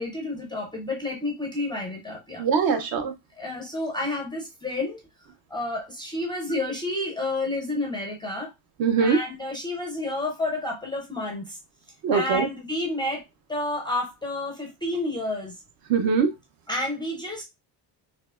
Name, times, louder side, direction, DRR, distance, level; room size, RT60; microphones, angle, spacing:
voice 1, 0.0-2.4 3.4-5.0 5.5-8.5 9.0-11.6 12.1-15.5 16.7-17.4, left 2 dB, 10° left, 0.4 m, -30 dB
voice 2, 2.4-3.1 8.8-9.2 12.0-12.5 15.9-16.3, right 5 dB, 50° right, 0.6 m, -22 dB
4.3 x 2.8 x 2.3 m
cardioid pair, 180°, 46 cm